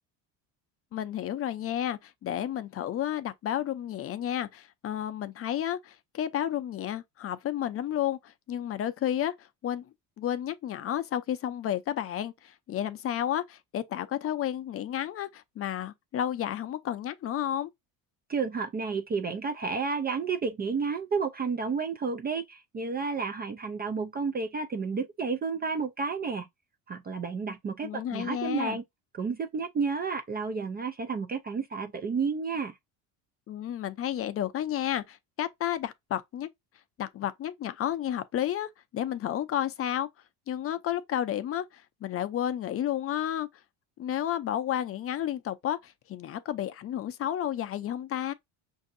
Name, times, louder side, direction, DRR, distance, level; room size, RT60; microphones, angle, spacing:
voice 1, 0.9-9.8 10.2-17.7 27.8-28.8 33.5-36.5 37.0-40.1 40.5-43.5 44.0-48.3, left 11 dB, 35° left, 0.5 m, -32 dB
voice 2, 18.3-26.5 26.9-28.8 29.1-32.8, right 5 dB, 25° right, 0.3 m, -31 dB
5.6 x 2.7 x 2.5 m
cardioid pair, 115°, 40 cm